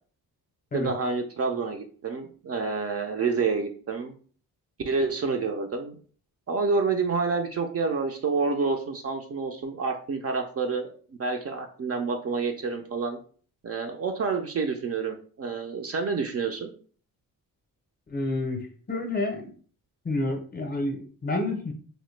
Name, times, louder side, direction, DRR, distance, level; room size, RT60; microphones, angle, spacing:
voice 1, 0.7-4.1 4.9-6.0 6.5-10.9 11.2-13.2 13.6-16.7, right 4 dB, 40° right, 4 dB, 0.4 m, -28 dB
voice 2, 18.1-19.5 20.0-21.7, left 2 dB, 25° left, 3 dB, 0.6 m, -29 dB
3.0 x 2.1 x 3.1 m, 0.43 s
cardioid pair, 120°, 37 cm